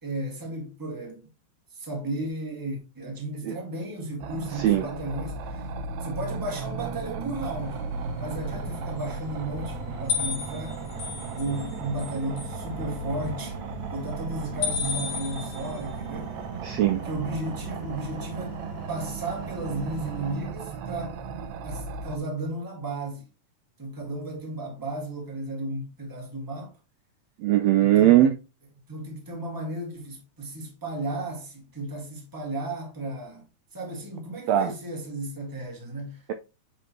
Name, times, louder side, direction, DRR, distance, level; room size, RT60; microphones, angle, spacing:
voice 1, 0.0-1.3 1.7-5.7 6.0-7.8 8.2-10.9 11.3-13.6 13.9-16.4 17.0-18.6 18.9-21.2 21.6-23.3 23.8-26.7 27.8-28.3 28.9-33.4 33.7-36.2, right 2 dB, 10° right, 1.3 m, -34 dB
sound 1, 4.2-22.2, right 5 dB, 70° right, 1.9 m, -36 dB
voice 2, 4.6-4.9 16.6-17.1 27.4-28.3 34.5-34.7, right 12 dB, 90° right, 1.4 m, -20 dB
sound 2, 7.5-20.4, left 1 dB, 50° left, 2.6 m, -42 dB
sound 3, 10.1-11.7 12.0-12.5 14.6-15.8, left 6 dB, 90° left, 2.9 m, -31 dB
7.9 x 4.2 x 3.0 m
omnidirectional pair, 3.6 m